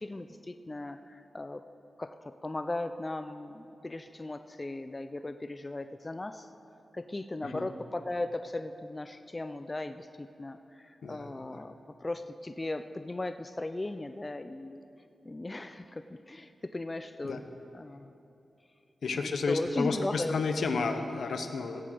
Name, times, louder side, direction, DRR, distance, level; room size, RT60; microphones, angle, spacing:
voice 1, 0.0-1.7 2.0-6.5 6.9-14.8 15.2-17.4 17.7-18.1 19.1-20.3, left 2 dB, 20° left, 9 dB, 0.4 m, -37 dB
voice 2, 19.0-21.8, left 4 dB, 75° left, 6 dB, 1.0 m, -31 dB
17.0 x 6.5 x 7.9 m, 2.9 s
wide cardioid pair, 115°, 0 cm